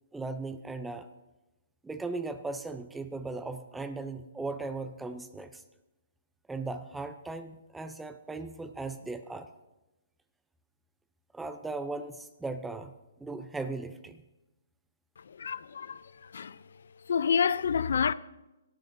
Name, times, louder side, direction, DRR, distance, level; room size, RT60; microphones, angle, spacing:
voice 1, 0.1-1.1 1.8-5.6 6.5-9.5 11.3-12.9 13.2-14.2, right 3 dB, 5° right, 0.5 m, -37 dB
voice 2, 15.4-16.0 16.3-16.6 17.1-18.1, left 7 dB, 70° left, 0.4 m, -28 dB
18.5 x 12.0 x 2.7 m
hypercardioid pair, 165°, 0 cm